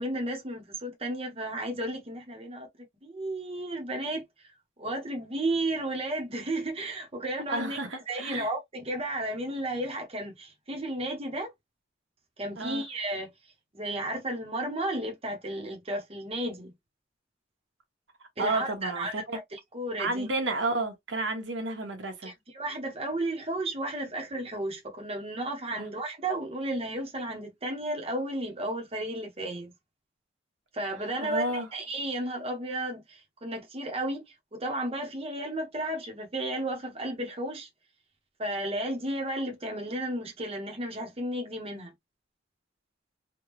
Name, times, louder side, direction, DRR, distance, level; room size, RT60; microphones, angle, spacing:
voice 1, 0.0-2.7 3.0-4.3 4.8-7.8 8.1-11.5 12.4-13.3 13.7-16.7 18.4-20.3 22.2-29.7 30.7-37.7 38.4-41.9, right 1 dB, 30° right, 0.9 m, -33 dB
voice 2, 7.5-8.5 12.6-12.8 18.4-19.4 20.0-22.3 25.7-25.9 31.1-31.7, right 2 dB, 90° right, 1.2 m, -31 dB
3.5 x 2.3 x 3.0 m
head